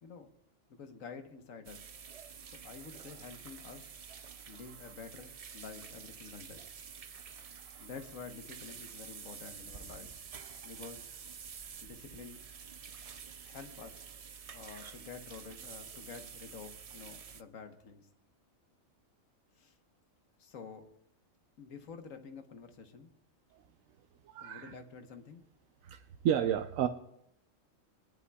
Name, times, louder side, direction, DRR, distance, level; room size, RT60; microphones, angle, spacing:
voice 1, 0.7-1.9 2.5-3.9 4.5-6.7 7.8-10.1 10.6-11.0 11.8-12.4 13.4-14.1 14.5-18.1 19.6-19.7 20.4-20.8 21.6-23.1 24.4-25.4, left 5 dB, 85° left, 6 dB, 1.5 m, -49 dB
sound 1, 1.6-17.4, right 7 dB, 60° right, 0.3 m, -49 dB
voice 2, 24.3-24.7 25.8-26.9, right 9 dB, 85° right, 7 dB, 1.0 m, -31 dB
23.0 x 11.0 x 2.3 m, 0.76 s
omnidirectional pair, 1.3 m